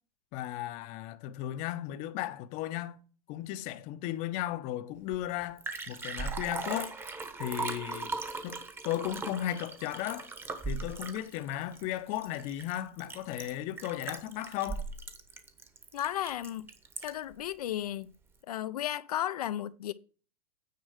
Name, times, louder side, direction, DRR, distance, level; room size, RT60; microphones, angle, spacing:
voice 1, 0.3-3.0 3.3-6.9 7.4-8.1 8.4-10.3 10.7-14.9, left 13 dB, 40° left, 0.7 m, -35 dB
Liquid, 5.1-5.2 5.4-17.3 17.8-17.9, right 4 dB, 10° right, 1.0 m, -39 dB
voice 2, 15.9-16.7 17.0-18.1 18.5-19.9, left 12 dB, 80° left, 0.6 m, -34 dB
9.3 x 4.6 x 6.4 m
hypercardioid pair, 140°, 19 cm